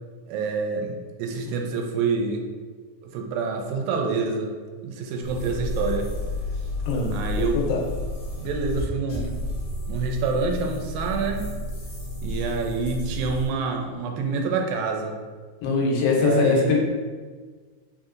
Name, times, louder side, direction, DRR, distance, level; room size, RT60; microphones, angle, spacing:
voice 1, 0.3-2.4 3.0-4.5 4.8-6.1 7.1-7.6 8.4-9.4 9.9-11.5 12.2-15.2 16.1-16.8, right 4 dB, 85° right, 2 dB, 2.2 m, -27 dB
sound 1, 5.2-13.5, left 1 dB, 55° left, 2.0 m, -31 dB
voice 2, 15.6-16.8, left 4 dB, 85° left, -1 dB, 2.4 m, -21 dB
5.2 x 2.7 x 2.4 m, 1.5 s
omnidirectional pair, 4.0 m